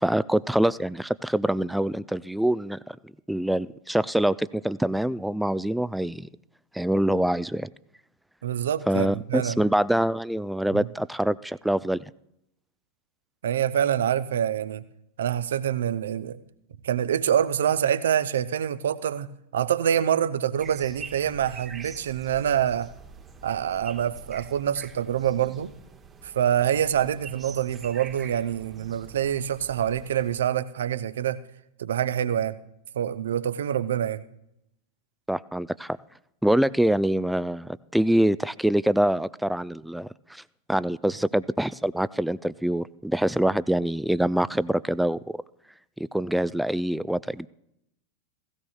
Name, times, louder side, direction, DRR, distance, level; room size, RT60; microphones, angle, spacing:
voice 1, 0.0-3.0 3.3-6.3 6.7-7.7 8.9-12.0 35.3-36.0 36.4-40.4 40.7-45.2 46.1-47.5, right 1 dB, ahead, 17 dB, 0.3 m, -25 dB
voice 2, 8.4-9.6 10.7-10.9 13.4-14.8 15.2-16.4 16.8-19.3 19.5-22.9 23.4-25.7 26.2-31.4 31.8-32.6 32.9-34.2, right 9 dB, 60° right, 14 dB, 0.6 m, -26 dB
sound 1, 20.6-30.4, right 5 dB, 20° right, 0.9 m, -46 dB
17.0 x 16.5 x 2.4 m, 0.79 s
figure-of-eight pair, 90°, 0 cm